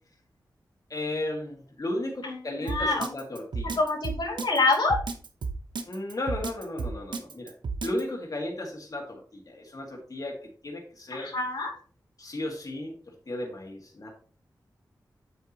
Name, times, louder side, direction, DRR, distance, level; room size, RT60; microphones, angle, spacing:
voice 1, 0.9-3.8 5.9-7.5 7.8-11.3 12.2-14.1, left 1 dB, 50° left, 0 dB, 2.0 m, -35 dB
voice 2, 2.2-3.1 3.8-5.0 11.1-11.7, left 3 dB, 85° left, -3 dB, 2.6 m, -26 dB
Drum kit, 2.7-8.0, right 4 dB, 85° right, 0.9 m, -32 dB
8.1 x 7.1 x 3.0 m, 0.43 s
cardioid pair, 60°, 8 cm